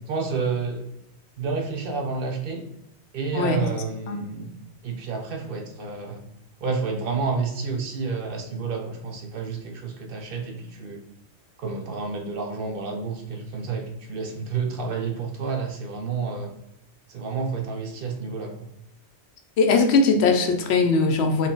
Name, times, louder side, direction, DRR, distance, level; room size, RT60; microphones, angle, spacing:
voice 1, 0.1-0.9 1.4-2.6 3.1-4.5 4.8-6.2 6.6-11.0 11.6-16.5 17.1-18.7, right 4 dB, 60° right, 3 dB, 0.7 m, -30 dB
voice 2, 19.6-21.5, left 4 dB, 75° left, 5 dB, 0.8 m, -20 dB
3.9 x 2.2 x 3.7 m, 0.84 s
omnidirectional pair, 1.1 m